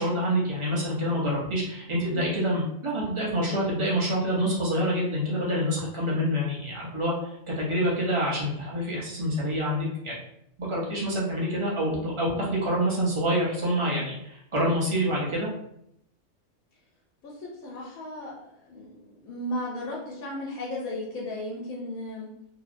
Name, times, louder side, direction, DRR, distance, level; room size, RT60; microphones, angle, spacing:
voice 1, 0.0-10.1 10.6-15.5, equal, 30° right, -6 dB, 0.6 m, -27 dB
voice 2, 11.7-12.1 17.2-22.3, left 1 dB, 90° left, -5 dB, 1.1 m, -36 dB
2.8 x 2.1 x 2.5 m, 0.76 s
omnidirectional pair, 1.4 m